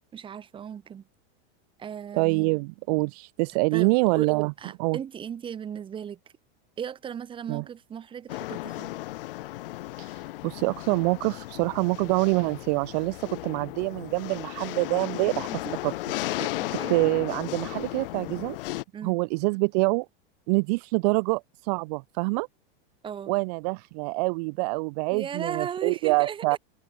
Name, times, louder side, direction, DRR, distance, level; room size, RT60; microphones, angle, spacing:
voice 1, 0.1-1.0 1.8-2.5 3.7-4.3 4.6-6.2 6.8-8.9 15.6-15.8 16.4-17.0 18.9-19.2 23.0-23.3 25.1-26.6, right 8 dB, 15° right, 7.2 m, -36 dB
voice 2, 2.1-4.5 4.8-5.0 7.5-7.6 10.0-15.5 15.8-15.9 16.9-18.6 19.0-20.1 20.5-22.5 23.3-26.6, right 29 dB, 40° right, 1.4 m, -26 dB
sound 1, 8.3-18.8, left 17 dB, 60° left, 1.6 m, -35 dB
supercardioid pair, 175°, 31 cm